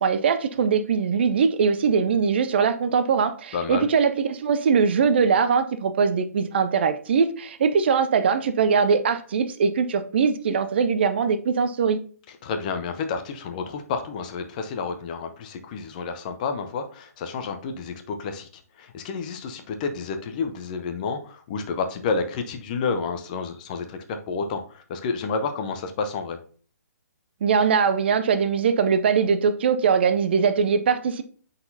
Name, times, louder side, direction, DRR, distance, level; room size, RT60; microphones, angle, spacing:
voice 1, 0.0-12.0 27.4-31.2, right 6 dB, 40° right, 0.5 m, -21 dB
voice 2, 3.5-3.9 12.4-26.4, left 5 dB, 30° left, 0.7 m, -30 dB
9.3 x 4.1 x 2.7 m
figure-of-eight pair, 130°, 9 cm